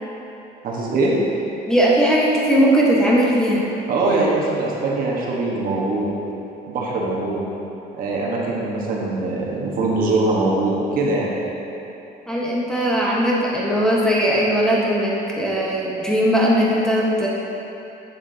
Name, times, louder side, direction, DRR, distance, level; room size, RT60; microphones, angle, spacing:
voice 1, 0.6-1.1 3.9-6.1 6.7-7.5 7.9-11.3, right 2 dB, 60° right, -4 dB, 1.3 m, -22 dB
voice 2, 1.7-3.6 12.3-17.3, equal, 5° left, -5 dB, 1.2 m, -19 dB
8.1 x 7.2 x 2.8 m, 2.9 s
cardioid pair, 110°, 17 cm